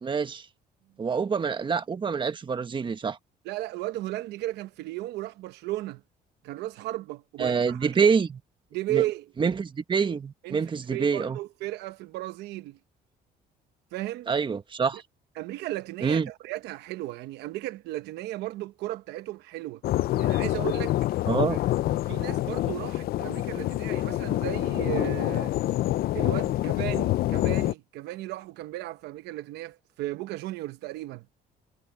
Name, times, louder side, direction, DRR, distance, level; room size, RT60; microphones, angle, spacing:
voice 1, 0.0-0.4 1.0-3.2 7.4-8.4 8.9-9.0 9.4-11.4 14.3-15.0 16.0-16.3 21.3-21.6, right 5 dB, 30° right, 1.4 m, -26 dB
voice 2, 3.4-6.0 6.4-8.1 8.7-9.3 10.4-10.6 10.9-12.8 13.9-14.3 15.4-19.8 20.2-21.0 22.1-25.5 26.1-31.3, right 16 dB, 85° right, 0.9 m, -35 dB
sound 1, 19.8-27.7, left 15 dB, 65° left, 0.5 m, -26 dB
cardioid pair, 110°, 17 cm